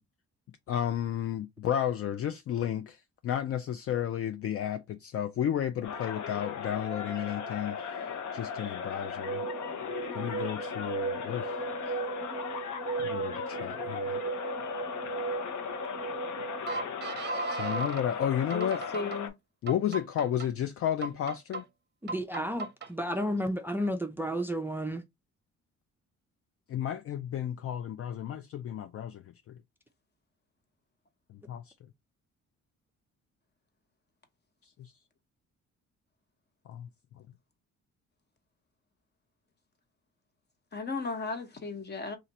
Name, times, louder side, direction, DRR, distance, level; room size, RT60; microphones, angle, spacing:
voice 1, 0.7-8.0 8.3-9.4 10.1-11.6 13.0-14.2 17.5-18.8 19.6-21.6 26.7-29.5 31.3-31.7 34.8-34.9 36.7-36.9, left 10 dB, 50° left, 0.4 m, -32 dB
sound 1, 5.8-19.3, left 6 dB, 70° left, 0.9 m, -37 dB
sound 2, 9.0-18.0 18.5-19.2 19.7-20.5 21.0-21.6 22.1-22.9, right 5 dB, 35° right, 0.8 m, -36 dB
voice 2, 18.5-19.3 40.7-42.2, left 4 dB, 35° left, 1.0 m, -35 dB
voice 3, 22.0-25.0, equal, 5° right, 0.4 m, -32 dB
2.8 x 2.5 x 4.1 m
cardioid pair, 90°, 30 cm